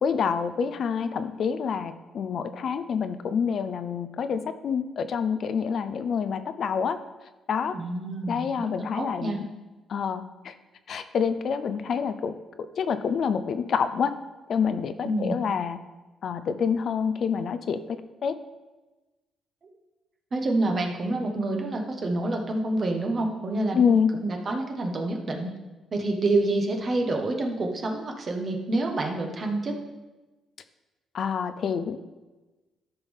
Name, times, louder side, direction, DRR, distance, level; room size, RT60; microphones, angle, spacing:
voice 1, 0.0-7.0 7.5-7.7 8.3-9.5 9.9-10.5 10.9-12.3 12.8-14.1 14.5-15.8 16.2-18.4 23.7-24.2 31.1-32.0, left 6 dB, 60° left, 11 dB, 0.5 m, -27 dB
voice 2, 7.7-8.7 8.9-9.4 15.0-15.4 20.3-25.5 25.9-29.7, right 2 dB, 45° right, 2 dB, 1.5 m, -27 dB
13.0 x 5.6 x 3.6 m, 1.2 s
cardioid pair, 90°, 0 cm